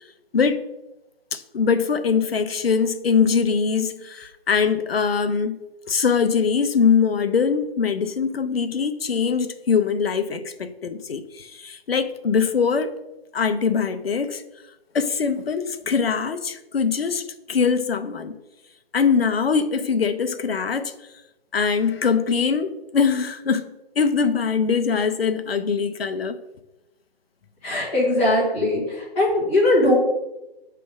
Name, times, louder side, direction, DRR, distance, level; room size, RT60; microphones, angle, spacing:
voice 1, 1.3-5.6 5.9-12.9 13.3-14.4 14.9-18.3 18.9-20.9 21.5-26.4, left 6 dB, 70° left, 10 dB, 0.7 m, -22 dB
voice 2, 27.6-30.0, left 1 dB, 10° left, -8 dB, 1.3 m, -20 dB
6.3 x 3.4 x 4.8 m, 0.98 s
hypercardioid pair, 170°, 31 cm